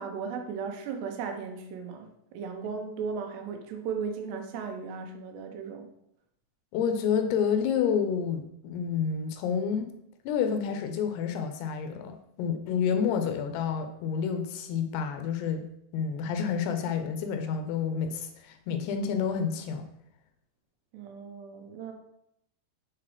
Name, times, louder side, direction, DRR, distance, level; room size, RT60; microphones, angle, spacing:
voice 1, 0.0-5.9 20.9-21.9, right 5 dB, 85° right, 5 dB, 3.0 m, -36 dB
voice 2, 6.7-9.9 10.3-15.7 15.9-19.9, left 7 dB, 80° left, 7 dB, 2.7 m, -29 dB
7.4 x 4.0 x 4.8 m, 0.77 s
omnidirectional pair, 4.8 m